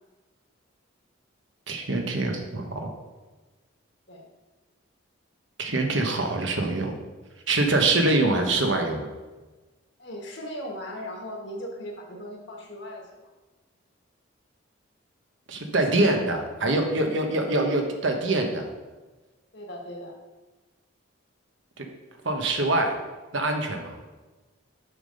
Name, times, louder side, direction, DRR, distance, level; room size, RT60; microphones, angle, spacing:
voice 1, 1.7-2.9 5.6-6.9 7.5-9.1 15.5-18.7 21.8-21.9 22.2-22.9 23.3-24.0, right 2 dB, 65° right, 3 dB, 1.1 m, -24 dB
voice 2, 10.0-13.3 15.9-16.1 19.5-20.1, equal, 60° left, 1 dB, 1.6 m, -38 dB
7.0 x 5.7 x 5.2 m, 1.2 s
head